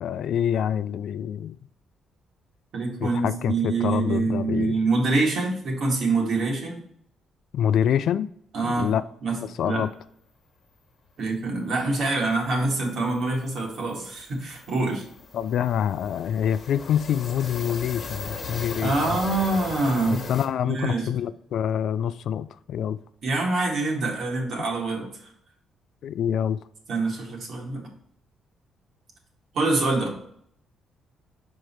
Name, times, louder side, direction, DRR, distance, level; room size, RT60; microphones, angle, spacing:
voice 1, 0.0-1.6 3.0-4.8 7.5-8.3 8.6-9.0 9.6-9.9 15.3-19.2 20.1-23.0 26.0-26.6, left 9 dB, 70° left, 0.3 m, -26 dB
voice 2, 2.7-6.8 8.5-8.9 9.2-9.9 11.2-15.1 18.8-20.2 20.6-21.1 23.2-25.1 26.9-27.9 29.5-30.1, right 3 dB, 65° right, 2.0 m, -25 dB
sound 1, 12.1-12.2 12.4-12.6 12.9-20.5, left 4 dB, 45° left, 1.1 m, -38 dB
5.3 x 4.8 x 4.5 m
cardioid pair, 90°, 0 cm